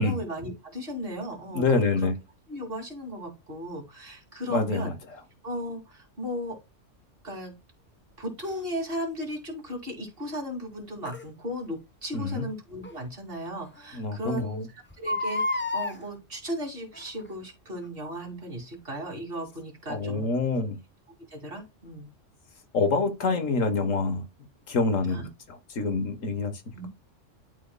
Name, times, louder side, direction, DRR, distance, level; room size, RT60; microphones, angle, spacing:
voice 1, 0.0-2.1 2.5-4.9 5.4-6.6 7.2-7.5 8.2-14.7 15.0-20.3 21.3-22.1 25.1-25.3 26.7-26.9, equal, 45° right, 2.7 m, -36 dB
voice 2, 1.5-2.1 4.5-5.0 12.1-12.5 13.9-14.7 19.9-20.8 22.7-24.2 24.7-25.2 25.8-26.6, left 3 dB, 90° left, 1.6 m, -26 dB
Crying sobbing, 8.4-8.6 11.0-11.2 12.8-12.9 13.4-13.5 13.8-13.9 14.9-16.0 16.9-17.3 17.8-17.9, left 2 dB, 10° left, 0.9 m, -30 dB
12.0 x 4.5 x 2.2 m
omnidirectional pair, 1.3 m